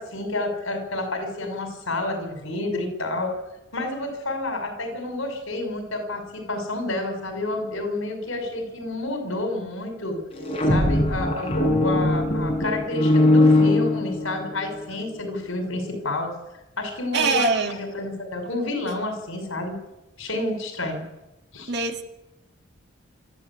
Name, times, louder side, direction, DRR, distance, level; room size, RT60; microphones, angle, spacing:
voice 1, 0.0-3.3 3.7-10.2 10.7-16.3 16.8-19.8 20.2-21.0 21.5-21.7, left 2 dB, 80° left, 5 dB, 5.9 m, -29 dB
sound 1, 10.3-14.6, left 2 dB, 25° left, 4.8 m, -20 dB
voice 2, 17.1-17.8 21.7-22.0, right 4 dB, 55° right, 4 dB, 2.2 m, -22 dB
24.0 x 14.5 x 8.7 m, 0.93 s
head